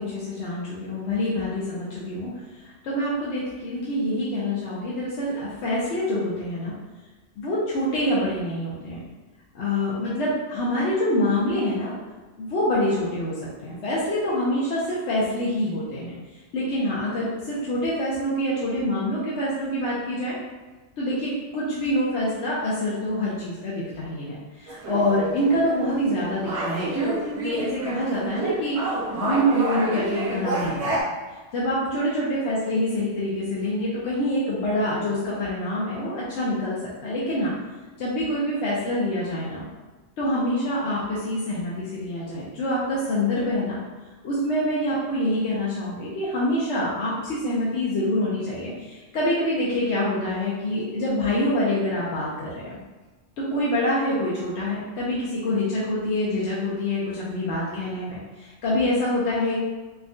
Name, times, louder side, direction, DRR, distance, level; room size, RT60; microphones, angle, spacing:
voice 1, 0.0-2.3 2.6-6.7 7.4-9.0 9.5-12.0 12.4-16.1 16.5-20.3 21.0-28.8 29.1-31.0 31.5-37.5 38.0-39.6 40.2-43.8 44.2-52.8 53.4-59.5, left 1 dB, 70° left, -7 dB, 0.9 m, -26 dB
sound 1, 24.7-31.0, right 2 dB, 85° right, 0.9 m, -29 dB
3.5 x 2.2 x 2.5 m, 1.2 s
omnidirectional pair, 1.2 m